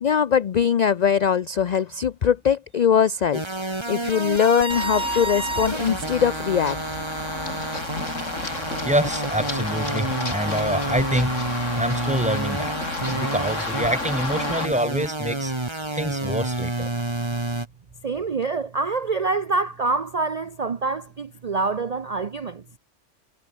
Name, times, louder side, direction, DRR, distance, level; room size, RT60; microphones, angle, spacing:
voice 1, 0.0-6.8, left 8 dB, 50° left, 0.5 m, -21 dB
sound 1, 3.3-17.7, right 2 dB, 20° right, 2.2 m, -29 dB
Run, 4.7-14.7, left 2 dB, 90° left, 4.4 m, -31 dB
voice 2, 8.8-12.7 13.0-16.9, right 1 dB, 5° right, 1.7 m, -26 dB
voice 3, 18.0-22.6, right 3 dB, 40° right, 0.7 m, -26 dB
omnidirectional pair, 1.3 m